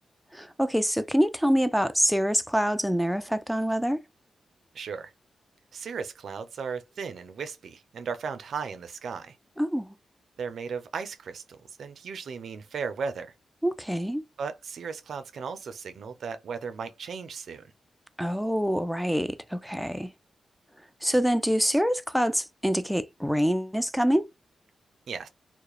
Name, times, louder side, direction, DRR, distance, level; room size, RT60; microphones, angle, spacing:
voice 1, 0.3-4.0 9.6-9.9 13.6-14.2 18.2-20.1 21.0-24.3, equal, ahead, 0.3 m, -25 dB
voice 2, 4.7-5.1 5.7-9.4 10.4-13.3 14.4-17.6 25.1-25.3, right 5 dB, 75° right, 0.4 m, -36 dB
2.3 x 2.0 x 2.9 m
cardioid pair, 70°, 0 cm